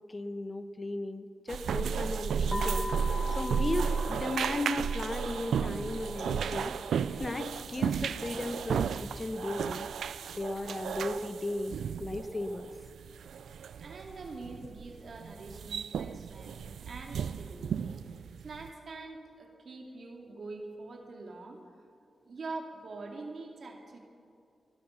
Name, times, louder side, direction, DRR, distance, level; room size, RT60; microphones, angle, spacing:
voice 1, 0.1-2.9 3.4-6.7 7.2-9.9 10.4-12.7, left 2 dB, 35° left, 10 dB, 1.0 m, -36 dB
sound 1, 1.5-18.7, right 7 dB, 90° right, 0.3 m, -34 dB
sound 2, 2.5-9.5, left 2 dB, 20° left, 1.7 m, -42 dB
voice 2, 13.8-21.6 22.2-24.0, right 3 dB, 70° right, 2 dB, 2.4 m, -44 dB
19.5 x 12.0 x 5.7 m, 2.4 s
cardioid pair, 55°, 0 cm